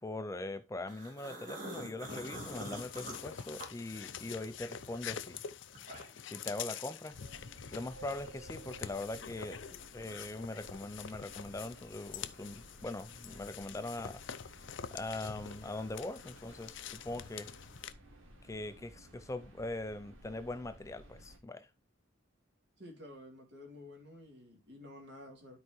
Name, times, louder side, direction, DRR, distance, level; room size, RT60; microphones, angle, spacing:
voice 1, 0.0-5.4 6.2-7.2 7.7-9.6 9.9-14.2 14.9-17.5 18.4-21.7, left 2 dB, 15° left, 0.4 m, -41 dB
sound 1, 0.9-4.4 4.8-6.3, right 1 dB, 40° right, 3.2 m, -45 dB
sound 2, 2.1-17.9, left 8 dB, 65° left, 0.6 m, -46 dB
sound 3, 7.1-21.4, right 1 dB, 80° right, 2.4 m, -56 dB
voice 2, 22.8-25.6, left 1 dB, 55° right, 3.2 m, -51 dB
12.0 x 4.7 x 3.1 m
head